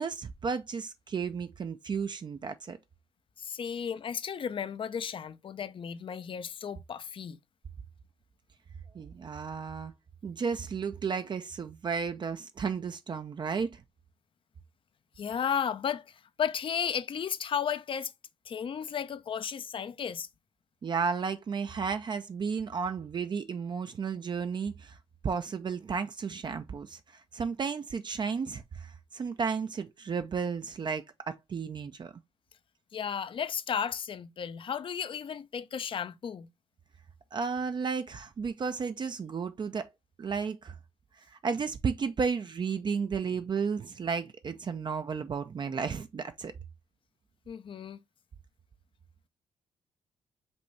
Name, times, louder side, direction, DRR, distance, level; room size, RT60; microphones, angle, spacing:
voice 1, 0.0-2.8 8.9-9.9 10.2-13.8 20.8-24.9 25.2-32.1 37.3-39.9 40.2-40.7 41.3-46.5, right 5 dB, 40° right, 0.5 m, -33 dB
voice 2, 3.4-7.4 15.2-18.1 18.5-20.3 32.9-36.5 47.5-48.0, left 7 dB, 45° left, 0.5 m, -34 dB
5.3 x 2.6 x 3.2 m
cardioid pair, 70°, 12 cm